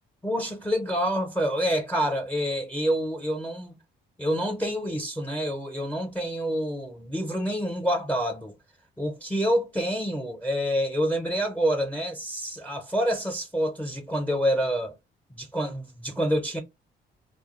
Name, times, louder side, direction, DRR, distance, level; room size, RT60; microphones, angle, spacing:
voice 1, 0.2-3.8 4.2-8.5 9.0-14.9 15.3-16.6, equal, 5° left, 0.5 m, -27 dB
2.3 x 2.2 x 2.9 m
cardioid pair, 90°, 20 cm